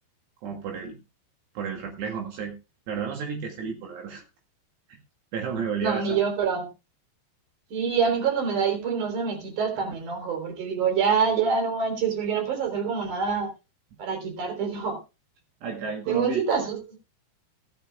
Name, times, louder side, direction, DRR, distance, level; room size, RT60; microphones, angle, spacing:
voice 1, 0.4-1.0 1.6-2.6 2.9-4.2 4.9-5.0 5.3-6.2 15.6-16.4, right 6 dB, 70° right, 1 dB, 4.1 m, -32 dB
voice 2, 5.8-6.7 7.7-13.5 14.0-15.0 16.1-17.0, right 6 dB, 45° right, 5 dB, 4.8 m, -26 dB
16.0 x 13.5 x 2.3 m, 0.28 s
omnidirectional pair, 5.1 m